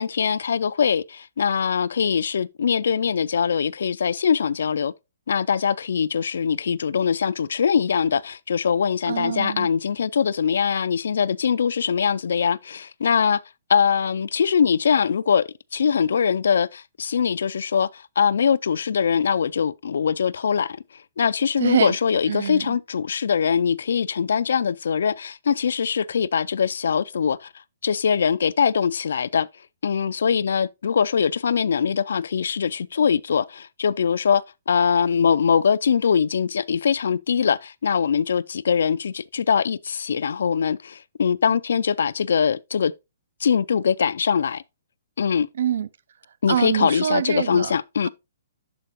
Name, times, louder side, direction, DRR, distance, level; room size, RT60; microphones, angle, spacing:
voice 1, 0.0-4.9 5.3-13.4 13.7-20.8 21.2-27.5 27.8-29.5 29.8-42.9 43.4-44.6 45.2-45.5 46.4-48.1, left 7 dB, 70° left, 0.3 m, -22 dB
voice 2, 9.1-9.7 21.6-22.0 22.3-22.8 45.5-45.9 46.5-47.8 48.0-48.1, right 9 dB, 55° right, 0.4 m, -25 dB
11.5 x 4.4 x 2.9 m
hypercardioid pair, 175°, 0 cm